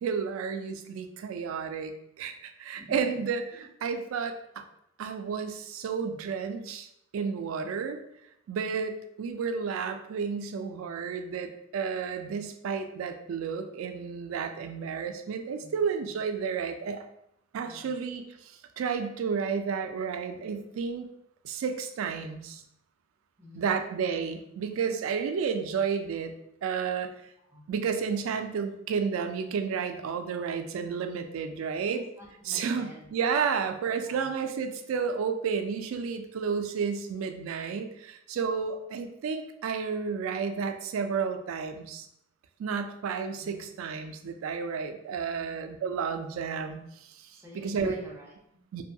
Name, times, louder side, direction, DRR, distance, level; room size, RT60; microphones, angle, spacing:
voice 1, 0.0-4.6 5.0-6.9 7.1-8.0 8.5-17.1 17.5-21.1 21.4-22.6 23.6-26.3 26.6-27.1 27.7-32.0 32.5-42.1 42.6-47.9 48.7-48.8, right 6 dB, 80° right, 8 dB, 0.3 m, -32 dB
voice 2, 2.8-3.7 15.6-15.8 17.6-17.9 23.4-23.9 27.4-27.6 31.8-33.1 34.0-34.3 43.4-43.7 45.1-45.5 47.3-48.6, equal, 10° right, -3 dB, 0.6 m, -48 dB
2.6 x 2.2 x 2.6 m, 0.78 s
head